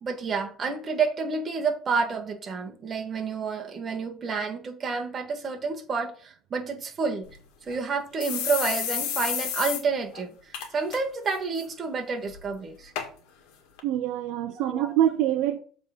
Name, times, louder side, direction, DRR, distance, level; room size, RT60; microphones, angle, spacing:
voice 1, 0.0-7.3 7.6-10.3 10.7-12.9 14.6-14.9, right 4 dB, 30° right, 1.5 m, -29 dB
sound 1, 7.3-7.4 7.7-7.8 8.2-9.8 10.1-10.2 10.5-11.0 11.3-11.6 12.3-12.4 12.9-13.1 13.8-13.9, left 8 dB, 75° left, 1.7 m, -30 dB
voice 2, 13.8-15.6, right 12 dB, 70° right, 0.7 m, -25 dB
7.4 x 3.8 x 5.2 m
cardioid pair, 120°, 0 cm